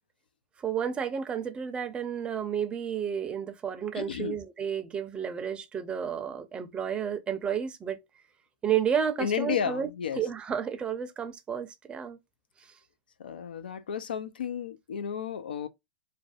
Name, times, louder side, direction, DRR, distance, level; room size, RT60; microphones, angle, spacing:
voice 1, 0.6-8.0 8.6-9.9 10.2-12.2, right 8 dB, 20° right, 0.4 m, -31 dB
voice 2, 3.9-4.4 9.2-10.2 13.2-15.7, left 8 dB, 90° left, 0.3 m, -32 dB
2.5 x 2.1 x 2.3 m
hypercardioid pair, 115°, 5 cm